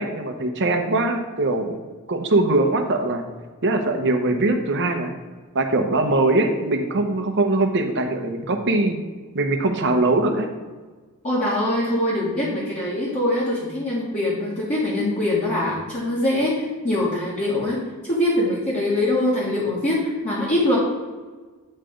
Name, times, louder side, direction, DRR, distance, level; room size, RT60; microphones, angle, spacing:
voice 1, 0.0-1.7 2.1-3.2 3.6-5.1 5.5-9.0 9.3-10.5, right 2 dB, 55° right, 5 dB, 0.8 m, -21 dB
voice 2, 11.2-20.8, left 1 dB, 35° left, -7 dB, 1.4 m, -23 dB
8.8 x 3.3 x 5.0 m, 1.4 s
head